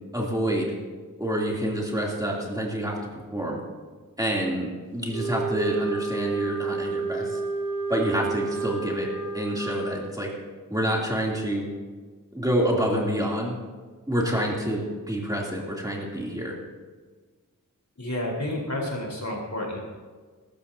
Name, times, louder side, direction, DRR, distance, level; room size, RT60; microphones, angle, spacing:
voice 1, 0.1-0.8 1.2-3.6 4.2-7.4 7.9-9.1 9.3-10.3 10.7-11.7 12.3-13.6 14.1-16.5, equal, 10° right, -3 dB, 3.1 m, -27 dB
Wind instrument woodwind instrument, 5.1-10.0, right 4 dB, 80° left, 2.9 m, -30 dB
voice 2, 18.0-19.8, left 1 dB, 55° left, -2 dB, 4.3 m, -30 dB
23.0 x 13.5 x 2.8 m, 1.4 s
wide cardioid pair, 55°, 34 cm